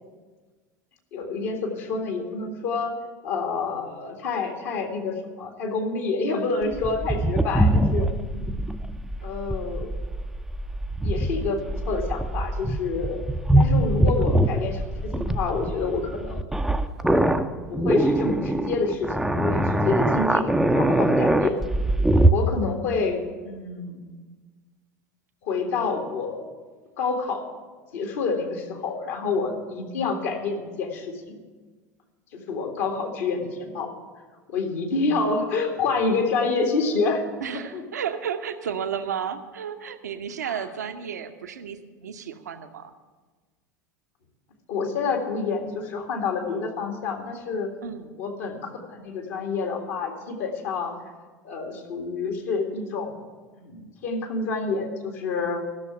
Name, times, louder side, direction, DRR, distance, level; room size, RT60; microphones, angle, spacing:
voice 1, 1.1-2.9 3.2-8.1 9.2-9.9 11.0-13.3 13.6-16.4 17.0-21.6 22.3-24.0 25.4-26.4 27.0-27.4 27.9-31.4 32.3-33.9 34.5-37.2 37.7-37.8 40.5-40.6 44.7-47.7 48.2-50.9 51.4-53.1 53.6-55.6, left 4 dB, 60° left, 3 dB, 2.0 m, -28 dB
sound 1, 6.7-22.3, right 1 dB, 5° right, 0.5 m, -23 dB
voice 2, 37.4-42.9 47.8-48.2, right 8 dB, 70° right, 7 dB, 0.8 m, -33 dB
13.0 x 6.5 x 8.8 m, 1.4 s
figure-of-eight pair, 80°, 9 cm